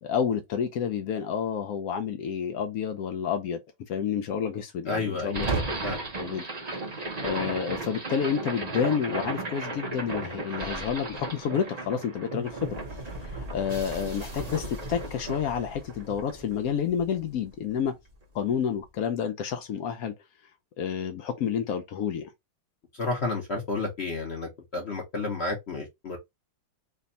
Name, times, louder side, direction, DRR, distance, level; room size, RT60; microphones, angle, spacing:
voice 1, 0.0-3.6 3.9-5.5 6.2-6.5 7.2-12.8 13.2-17.9 18.3-20.1 20.8-22.3, left 7 dB, 85° left, 0.7 m, -29 dB
voice 2, 4.9-5.4 5.8-6.0 22.9-26.2, left 3 dB, 50° left, 0.8 m, -31 dB
sound 1, 5.3-17.5, right 2 dB, 65° right, 0.4 m, -35 dB
3.4 x 2.3 x 3.9 m
omnidirectional pair, 2.1 m